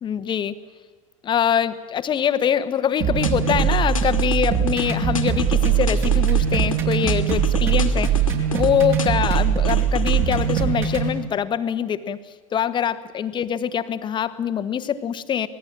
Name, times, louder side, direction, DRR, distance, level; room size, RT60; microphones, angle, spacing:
voice 1, 0.0-0.5 1.2-8.2 8.5-12.2 12.5-15.5, left 8 dB, 25° left, 12 dB, 1.3 m, -24 dB
sound 1, 3.0-11.1, right 8 dB, 45° right, 5.8 m, -21 dB
sound 2, 3.2-4.9 5.2-6.8 7.1-8.7 9.0-10.6, left 5 dB, 80° left, 2.3 m, -30 dB
26.0 x 19.0 x 9.0 m, 1.3 s
figure-of-eight pair, 80°, 17 cm